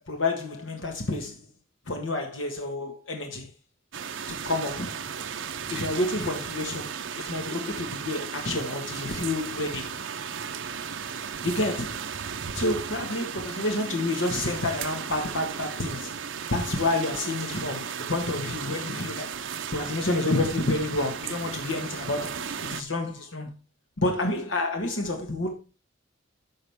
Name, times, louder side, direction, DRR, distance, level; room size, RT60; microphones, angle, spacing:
voice 1, 0.1-1.4 1.9-3.5 4.3-5.0 5.7-10.0 11.4-12.1 12.5-16.1 16.5-19.3 19.7-23.5 24.0-25.5, left 2 dB, 75° left, 1.6 m, -29 dB
sound 1, 3.9-22.8, right 7 dB, 70° right, 0.7 m, -35 dB
10.0 x 5.9 x 3.5 m
head